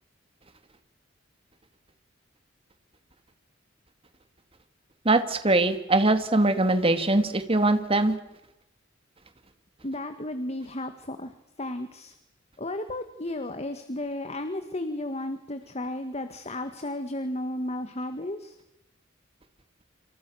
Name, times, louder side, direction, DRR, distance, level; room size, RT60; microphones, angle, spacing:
voice 1, 5.0-8.1, right 2 dB, 30° right, 9 dB, 2.5 m, -22 dB
voice 2, 9.8-11.3 11.6-12.1 12.6-18.6, left 1 dB, 35° left, 8 dB, 1.8 m, -33 dB
28.5 x 27.0 x 6.4 m, 0.90 s
head